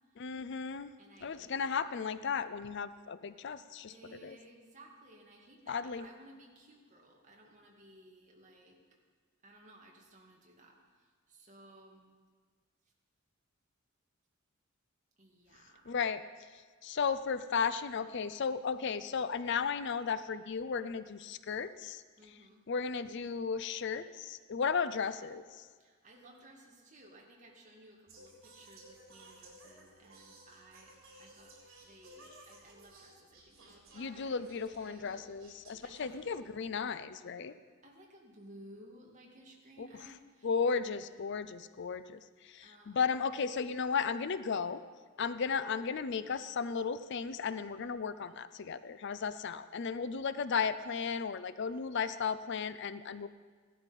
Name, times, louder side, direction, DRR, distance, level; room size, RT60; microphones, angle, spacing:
voice 1, 0.2-0.9 1.2-3.9 4.2-4.4 5.7-6.1 15.9-16.2 16.8-22.0 22.7-25.7 33.9-37.5 39.8-40.1 40.4-44.8 45.2-53.3, left 6 dB, 60° left, 13 dB, 0.5 m, -35 dB
voice 2, 1.0-1.7 3.9-8.8 9.4-12.1 15.2-16.0 22.2-22.6 25.8-34.3 34.8-35.1 35.8-36.2 37.8-40.5 42.6-43.0, right 1 dB, 40° right, 0 dB, 2.2 m, -57 dB
Singing, 28.1-36.8, right 1 dB, 75° right, 3.7 m, -57 dB
16.0 x 12.0 x 5.3 m, 1.5 s
head